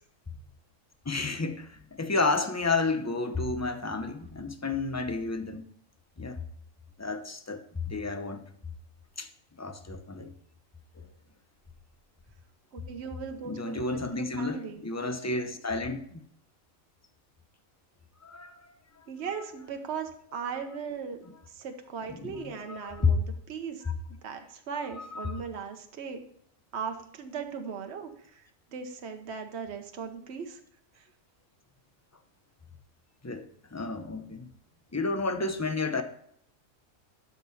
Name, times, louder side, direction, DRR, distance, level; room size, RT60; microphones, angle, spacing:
voice 1, 1.0-5.6 6.2-6.4 7.0-8.5 9.2-9.3 9.6-10.3 11.0-11.1 13.4-16.2 18.2-19.0 22.1-23.1 25.0-25.3 33.2-33.5 33.7-34.5 34.9-36.0, left 3 dB, 15° left, 0.6 m, -31 dB
voice 2, 12.7-13.8 14.2-14.8 19.1-21.2 21.5-23.8 24.2-26.2 26.7-28.4 28.7-30.6 30.9-31.1, right 6 dB, 55° right, 1.3 m, -38 dB
12.5 x 5.5 x 4.1 m
omnidirectional pair, 1.4 m